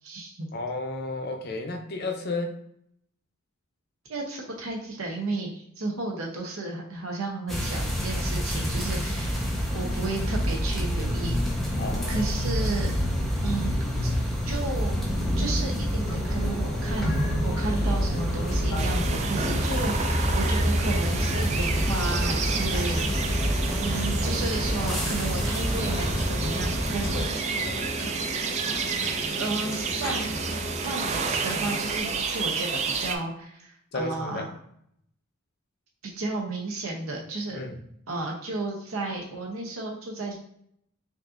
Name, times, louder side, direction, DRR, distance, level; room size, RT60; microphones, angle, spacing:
voice 1, 0.0-0.5 4.1-9.4 9.7-11.4 12.1-13.7 14.0-14.1 14.5-15.0 15.4-17.2 17.4-23.4 23.8-27.6 29.3-30.4 30.7-34.5 36.2-37.6 38.1-40.4, right 2 dB, 75° right, -1 dB, 0.8 m, -33 dB
voice 2, 0.5-2.5 11.8-12.5 22.7-23.1 23.9-24.1 27.6-27.9 33.9-34.5 37.5-37.8, left 2 dB, 50° left, 4 dB, 0.6 m, -33 dB
sound 1, 7.5-27.3, equal, ahead, 0.8 m, -27 dB
sound 2, 16.0-32.0, equal, 80° left, 1.0 m, -35 dB
sound 3, 18.8-33.2, right 5 dB, 30° right, 0.3 m, -31 dB
5.3 x 2.6 x 2.4 m, 0.70 s
head